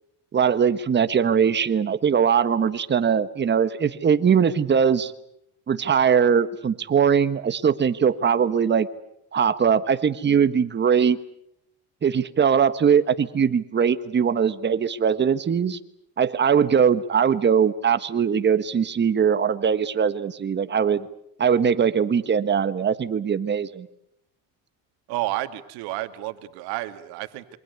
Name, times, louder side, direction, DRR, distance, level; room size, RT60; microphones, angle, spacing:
voice 1, 0.3-5.1 5.7-8.9 9.3-11.2 12.0-15.8 16.2-21.1 21.4-23.9, right 7 dB, 30° right, 12 dB, 1.4 m, -21 dB
voice 2, 25.1-27.6, right 17 dB, 80° right, 9 dB, 2.2 m, -31 dB
27.5 x 24.5 x 8.3 m, 0.76 s
cardioid pair, 125°, 38 cm